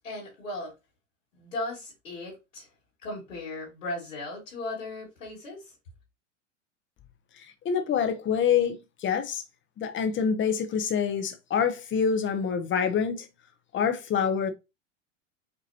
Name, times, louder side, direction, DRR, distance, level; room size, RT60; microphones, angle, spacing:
voice 1, 0.0-0.7 1.4-2.7 3.0-5.7, left 2 dB, 80° left, 2.7 m, -37 dB
voice 2, 7.6-8.8 9.0-9.4 9.8-13.3 13.7-14.5, left 7 dB, 30° left, 1.1 m, -26 dB
5.3 x 2.9 x 2.8 m
hypercardioid pair, 90°, 38 cm